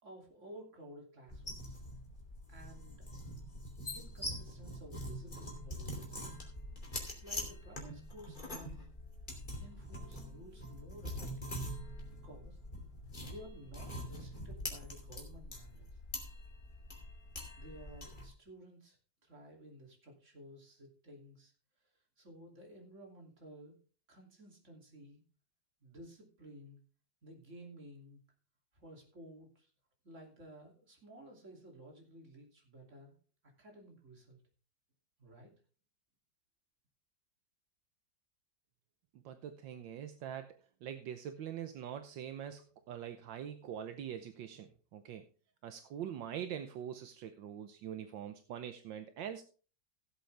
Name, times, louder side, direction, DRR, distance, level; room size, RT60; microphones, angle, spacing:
voice 1, 0.0-1.8 2.5-3.1 3.9-6.2 7.2-8.9 9.6-11.6 12.1-12.6 13.3-16.3 17.5-21.5 22.2-23.8 24.1-25.2 25.8-26.8 27.2-28.2 28.7-29.7 30.0-33.1 33.6-34.4 35.2-35.5, right 1 dB, 40° right, 0 dB, 3.1 m, -54 dB
sound 1, 1.3-18.3, left 1 dB, 25° left, 2.7 m, -44 dB
voice 2, 39.2-40.5 40.8-45.2 45.6-49.4, right 9 dB, 80° right, 8 dB, 1.5 m, -43 dB
16.5 x 7.8 x 3.4 m, 0.38 s
omnidirectional pair, 2.0 m